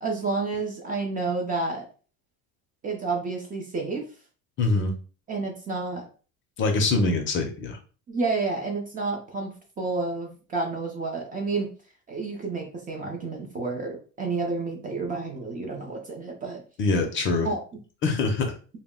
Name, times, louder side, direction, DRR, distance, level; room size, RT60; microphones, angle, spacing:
voice 1, 0.0-1.9 2.8-4.1 5.3-6.1 8.1-11.7 12.1-16.6 17.4-17.6, right 3 dB, 25° right, 1 dB, 0.4 m, -30 dB
voice 2, 4.6-4.9 6.6-7.8 16.8-17.5 18.0-18.5, left 3 dB, 35° left, 4 dB, 0.5 m, -24 dB
2.2 x 2.0 x 3.5 m, 0.37 s
cardioid pair, 150°, 35 cm